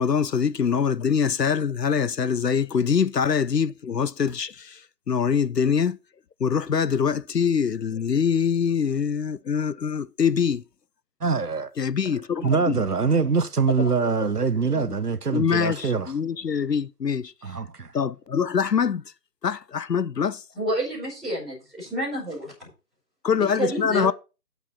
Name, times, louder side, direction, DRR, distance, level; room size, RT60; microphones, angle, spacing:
voice 1, 0.0-6.0 6.4-10.6 11.8-12.8 13.8-13.9 14.7-15.0 15.3-17.3 17.9-19.0 19.4-20.4 23.2-24.1, left 7 dB, 80° left, 0.7 m, -24 dB
voice 2, 11.2-11.7 12.4-16.1 17.4-17.9, right 5 dB, 70° right, 1.0 m, -24 dB
voice 3, 20.5-22.5 23.4-24.1, right 1 dB, ahead, 3.3 m, -29 dB
8.9 x 8.1 x 4.2 m
figure-of-eight pair, 160°, 48 cm